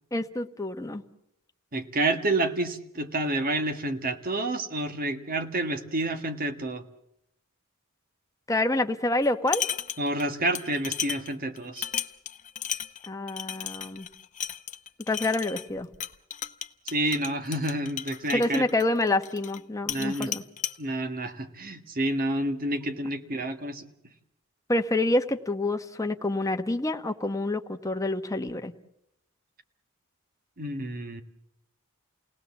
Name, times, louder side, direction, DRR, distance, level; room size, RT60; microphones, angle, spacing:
voice 1, 0.1-1.0 8.5-9.6 13.1-14.1 15.1-15.9 18.3-20.4 24.7-28.7, left 2 dB, 15° left, 6 dB, 1.1 m, -27 dB
voice 2, 1.7-6.8 10.0-11.9 16.8-18.7 19.9-20.3 20.8-23.8 30.6-31.2, right 1 dB, 40° right, 8 dB, 1.7 m, -29 dB
sound 1, 9.2-10.3 10.5-19.6 19.9-20.8, left 9 dB, 35° left, 0.8 m, -35 dB
29.5 x 18.5 x 7.2 m, 0.78 s
head